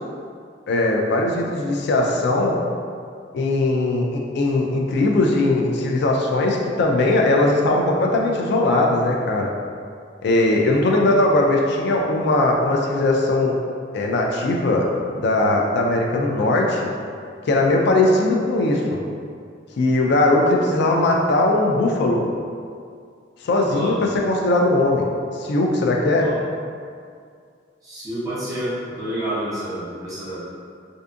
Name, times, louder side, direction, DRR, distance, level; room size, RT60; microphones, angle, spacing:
voice 1, 0.7-2.6 3.3-9.5 10.2-13.6 13.9-16.9 17.4-19.0 19.8-22.3 23.4-25.1 25.3-26.3, left 2 dB, 60° left, 0 dB, 0.3 m, -19 dB
voice 2, 27.8-30.5, right 1 dB, 20° right, -12 dB, 0.8 m, -29 dB
2.6 x 2.3 x 2.5 m, 2.2 s
head